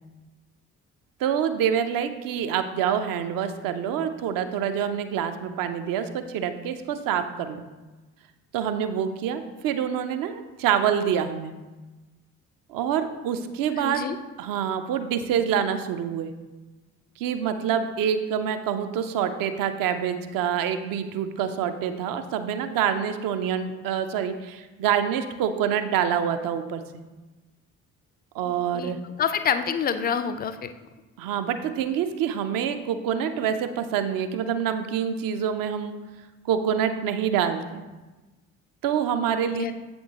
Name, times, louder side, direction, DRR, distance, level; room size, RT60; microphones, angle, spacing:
voice 1, 1.2-7.6 8.5-11.5 12.7-14.1 14.4-16.3 17.2-26.8 28.3-29.0 31.2-36.0 36.4-37.8 38.8-39.6, right 8 dB, 55° right, 9 dB, 0.6 m, -26 dB
voice 2, 13.8-14.2 28.4-28.9 29.2-30.7 39.5-39.7, left 7 dB, 25° left, 11 dB, 0.4 m, -27 dB
7.8 x 3.8 x 3.6 m, 1.2 s
figure-of-eight pair, 40°, 42 cm